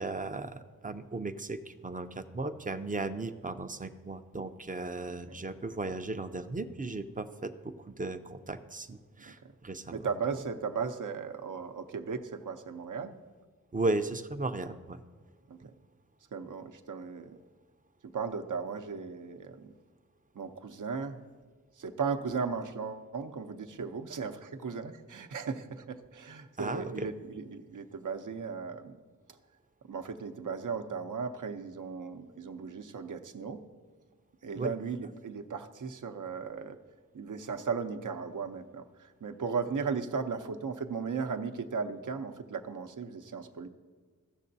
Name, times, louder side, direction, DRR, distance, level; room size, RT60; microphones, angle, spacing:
voice 1, 0.0-9.9 13.7-15.0 26.6-27.1 34.6-34.7, right 2 dB, 25° right, 9 dB, 0.5 m, -36 dB
voice 2, 9.9-13.1 13.9-14.0 15.5-15.6 16.3-17.4 18.0-19.7 20.3-21.2 21.8-29.0 29.3-29.4 29.8-33.6 34.4-36.8 37.1-43.7, right 5 dB, 65° right, 8 dB, 0.7 m, -36 dB
16.0 x 6.6 x 2.7 m, 1.5 s
cardioid pair, 60°, 34 cm